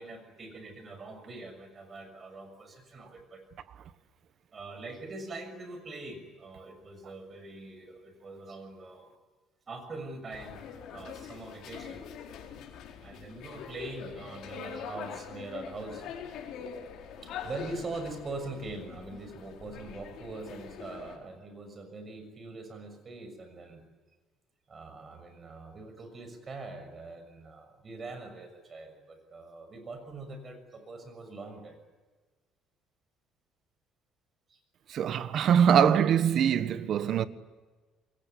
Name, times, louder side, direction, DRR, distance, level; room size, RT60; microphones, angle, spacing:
voice 1, 0.0-3.4 4.5-9.1 9.7-10.6 10.9-12.0 12.9-16.3 17.1-23.8 24.7-31.8 34.5-34.6, right 3 dB, 30° right, 6.6 m, -43 dB
Door of a bar of the seaport, 10.3-21.2, left 7 dB, 65° left, 4.5 m, -43 dB
voice 2, 34.9-37.3, right 8 dB, 50° right, 1.4 m, -23 dB
27.5 x 22.5 x 8.5 m
cardioid pair, 150°, 0 cm